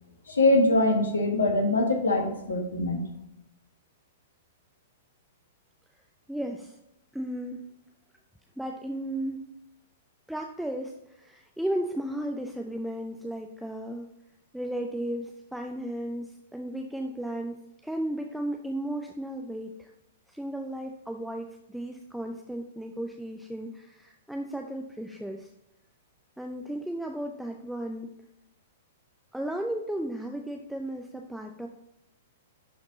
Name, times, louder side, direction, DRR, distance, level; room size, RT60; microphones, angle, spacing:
voice 1, 0.3-3.0, left 2 dB, 70° left, 4 dB, 1.5 m, -23 dB
voice 2, 6.3-6.8 7.1-7.6 8.6-9.5 10.3-14.1 14.5-19.9 20.3-25.5 26.4-28.1 29.3-31.7, right 1 dB, ahead, 3 dB, 0.5 m, -34 dB
11.0 x 4.4 x 4.0 m, 0.83 s
figure-of-eight pair, 105°, 0 cm